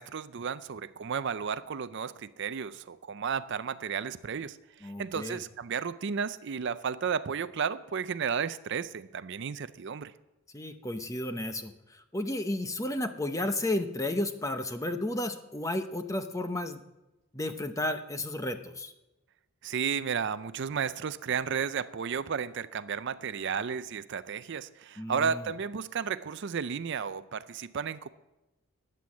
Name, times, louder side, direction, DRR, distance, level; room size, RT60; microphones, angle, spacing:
voice 1, 0.0-10.1 19.6-28.1, right 6 dB, 55° right, 14 dB, 0.5 m, -33 dB
voice 2, 4.8-5.4 10.5-16.8 17.3-18.9 25.0-25.4, left 1 dB, 15° left, 8 dB, 0.8 m, -33 dB
14.0 x 9.9 x 7.2 m, 1.0 s
head